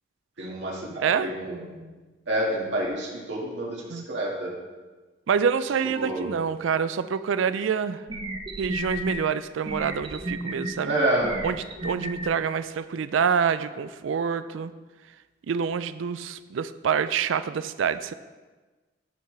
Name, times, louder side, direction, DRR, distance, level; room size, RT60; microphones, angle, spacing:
voice 1, 0.4-1.8 2.3-4.5 6.0-6.3 10.8-11.4, right 1 dB, 65° right, -3 dB, 1.9 m, -28 dB
voice 2, 1.0-1.3 3.9-4.0 5.3-8.0 8.6-10.9 11.4-14.7 15.5-18.1, right 7 dB, 85° right, 13 dB, 0.4 m, -26 dB
sound 1, 7.6-7.7 8.1-9.2 9.7-10.7 11.2-12.3, right 1 dB, 25° right, 0.7 m, -32 dB
13.5 x 5.8 x 3.3 m, 1.3 s
head